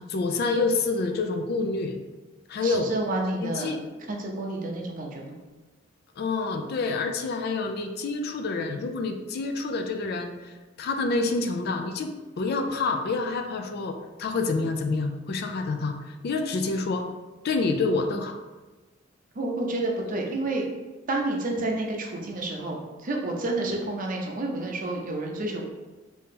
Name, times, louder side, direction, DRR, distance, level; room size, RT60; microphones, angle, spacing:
voice 1, 0.0-2.0 2.5-2.9 3.4-3.8 6.2-17.1 17.4-18.4, left 3 dB, 55° left, 5 dB, 0.3 m, -28 dB
voice 2, 2.6-3.7 4.1-5.3 19.4-20.6 21.1-25.7, right 2 dB, 45° right, 0 dB, 0.6 m, -29 dB
2.9 x 2.8 x 3.6 m, 1.2 s
head